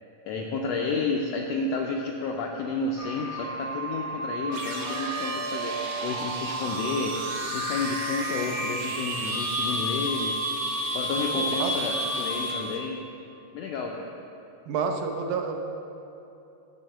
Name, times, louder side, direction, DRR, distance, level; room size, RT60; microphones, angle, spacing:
voice 1, 0.3-5.7 6.0-7.2 7.5-10.3 10.9-13.0 13.5-14.1, left 4 dB, 80° left, 0 dB, 1.5 m, -31 dB
sound 1, 3.0-12.6, right 1 dB, 40° right, 0.8 m, -35 dB
sound 2, 4.5-12.8, right 1 dB, 60° right, 1.4 m, -32 dB
voice 2, 11.3-11.7 14.7-15.6, right 5 dB, 85° right, 4 dB, 2.3 m, -29 dB
12.0 x 4.1 x 7.7 m, 2.8 s
omnidirectional pair, 3.6 m